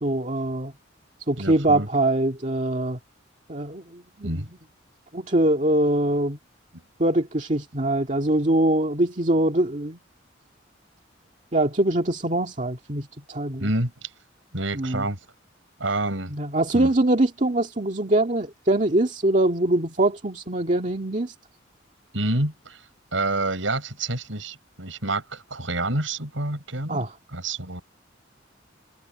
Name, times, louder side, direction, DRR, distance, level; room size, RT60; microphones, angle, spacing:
voice 1, 0.0-0.7 1.3-3.0 3.5-4.5 5.1-6.4 7.0-10.0 11.5-13.7 14.8-15.1 16.3-21.3 26.9-27.1, right 1 dB, 40° right, 2.0 m, -23 dB
voice 2, 1.4-1.9 4.2-4.5 13.6-14.1 14.5-15.2 15.8-16.3 16.7-16.9 22.1-22.8 23.1-27.8, right 2 dB, 80° right, 6.1 m, -28 dB
head